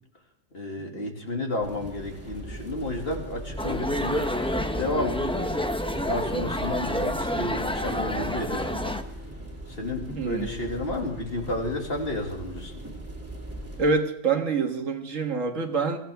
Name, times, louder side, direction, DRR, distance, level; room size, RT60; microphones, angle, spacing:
voice 1, 0.5-4.3 4.8-5.5 6.1-9.0 9.7-12.8, left 1 dB, 50° left, 1 dB, 2.6 m, -31 dB
sound 1, 1.6-13.9, right 1 dB, 10° right, 2.6 m, -39 dB
sound 2, 3.6-9.0, left 1 dB, 5° left, 0.6 m, -29 dB
voice 2, 10.2-10.5 13.8-16.0, right 4 dB, 85° right, 5 dB, 1.9 m, -26 dB
24.0 x 15.5 x 3.5 m, 0.67 s
omnidirectional pair, 1.3 m